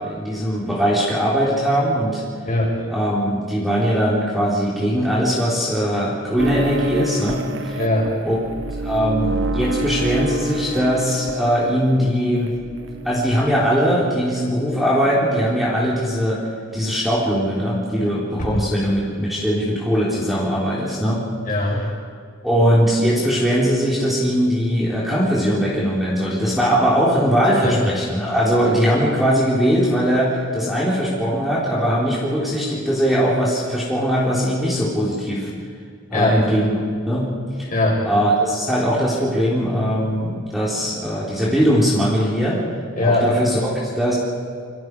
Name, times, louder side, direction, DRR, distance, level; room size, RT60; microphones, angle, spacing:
voice 1, 0.0-2.2 2.9-7.8 8.2-8.4 8.8-12.5 13.0-16.4 16.7-21.2 22.4-35.5 36.1-36.7 37.1-37.3 37.6-37.7 38.0-42.6 43.0-44.2, equal, ahead, -7 dB, 4.0 m, -20 dB
voice 2, 2.5-2.8 7.7-8.1 18.4-18.5 21.4-21.8 27.6-27.8 36.1-36.4 37.7-38.0 42.9-43.3, left 2 dB, 45° left, -2 dB, 6.3 m, -20 dB
sound 1, 6.4-12.1 12.4-13.5, right 2 dB, 70° right, 0.9 m, -28 dB
28.5 x 25.5 x 4.9 m, 2.1 s
head